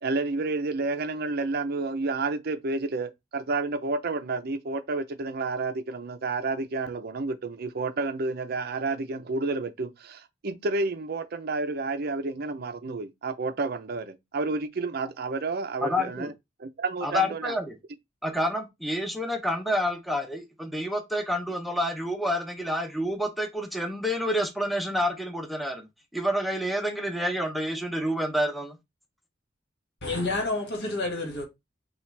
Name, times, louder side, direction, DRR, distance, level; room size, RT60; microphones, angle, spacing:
voice 1, 0.0-16.3 16.6-17.5, right 3 dB, 55° right, 0.5 m, -30 dB
voice 2, 15.8-16.3 17.0-17.6 18.2-25.9 26.1-28.8, equal, ahead, 0.7 m, -28 dB
voice 3, 30.0-31.4, left 2 dB, 60° left, 1.7 m, -29 dB
5.8 x 2.4 x 3.2 m
head